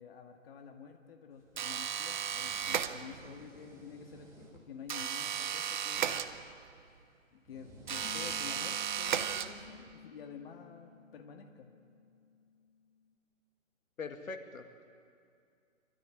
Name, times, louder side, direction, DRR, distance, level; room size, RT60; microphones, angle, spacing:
voice 1, 0.0-6.4 7.5-11.7, left 6 dB, 45° left, 4 dB, 1.9 m, -50 dB
sound 1, 1.3-8.8, right 1 dB, 5° right, 2.2 m, -58 dB
sound 2, 1.6-3.4 4.9-6.8 7.8-9.9, right 8 dB, 35° right, 0.7 m, -35 dB
Piano, 8.0-13.1, left 8 dB, 60° left, 1.9 m, -55 dB
voice 2, 14.0-14.8, left 4 dB, 80° left, 6 dB, 2.2 m, -42 dB
24.5 x 13.5 x 9.9 m, 2.4 s
hypercardioid pair, 160°, 40 cm